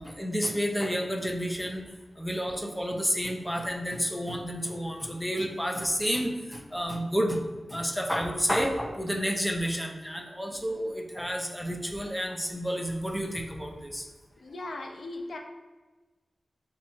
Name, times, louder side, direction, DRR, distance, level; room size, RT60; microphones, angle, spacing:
voice 1, 0.0-1.8 2.2-7.4 7.7-14.0 14.6-14.7, equal, 5° left, 3 dB, 0.6 m, -30 dB
voice 2, 14.4-15.4, left 2 dB, 80° left, 2 dB, 0.5 m, -38 dB
3.6 x 2.9 x 4.4 m, 1.2 s
wide cardioid pair, 65°, 0 cm